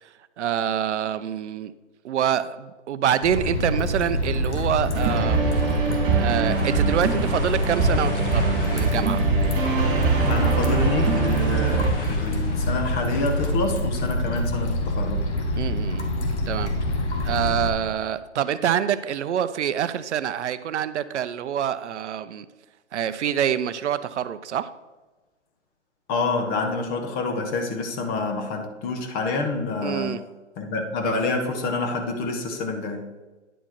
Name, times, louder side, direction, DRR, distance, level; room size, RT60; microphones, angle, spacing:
voice 1, 0.4-1.7 2.0-5.6 6.2-9.2 15.6-16.1 16.5-16.7 17.2-22.5 22.9-24.7 29.8-30.2, right 9 dB, 70° right, 14 dB, 0.5 m, -26 dB
sound 1, 3.2-17.7, left 1 dB, 65° left, 1.6 m, -26 dB
sound 2, 4.9-11.9, right 4 dB, 25° right, 2.2 m, -23 dB
sound 3, 6.4-13.5, left 2 dB, 45° left, 1.9 m, -39 dB
voice 2, 10.3-15.3 26.1-30.1 30.6-33.1, left 3 dB, 25° left, 5 dB, 1.0 m, -27 dB
10.0 x 4.5 x 4.4 m, 1.2 s
hypercardioid pair, 135°, 37 cm